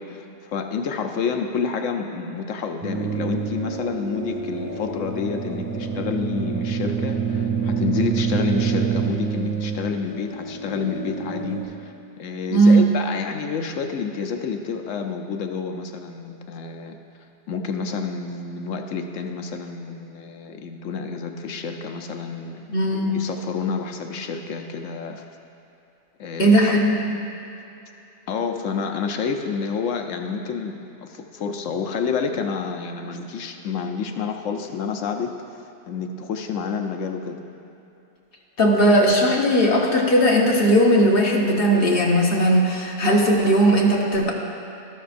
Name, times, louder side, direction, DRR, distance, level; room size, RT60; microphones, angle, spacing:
voice 1, 0.0-11.9 12.2-17.0 17.5-22.6 23.1-25.2 26.2-26.6 28.3-37.4, left 5 dB, 85° left, 5 dB, 1.1 m, -29 dB
sound 1, 2.8-11.6, right 5 dB, 15° right, 2.8 m, -27 dB
voice 2, 12.5-12.9 22.7-23.2 26.4-27.2 38.6-44.3, right 1 dB, 50° left, -2 dB, 1.4 m, -17 dB
13.5 x 12.0 x 2.6 m, 2.9 s
omnidirectional pair, 1.3 m